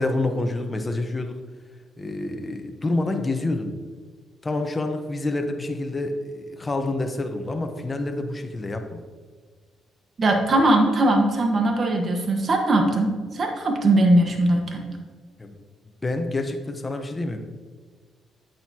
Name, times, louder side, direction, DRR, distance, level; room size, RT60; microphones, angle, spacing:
voice 1, 0.0-1.4 2.0-3.7 4.4-9.0 15.4-15.6 16.0-17.4, left 2 dB, 25° left, 5 dB, 1.0 m, -27 dB
voice 2, 10.2-14.9, right 1 dB, 45° right, 2 dB, 1.4 m, -20 dB
8.6 x 7.9 x 2.9 m, 1.5 s
cardioid pair, 90°, 0 cm